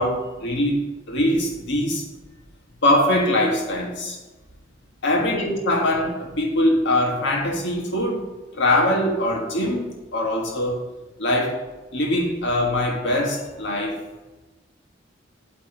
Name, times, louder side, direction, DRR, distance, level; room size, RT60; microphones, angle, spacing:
voice 1, 0.0-2.0 2.8-4.2 5.0-8.2 8.5-10.8 11.2-11.6 11.9-14.1, left 1 dB, 65° left, 0 dB, 1.6 m, -22 dB
8.7 x 3.4 x 6.7 m, 1.1 s
head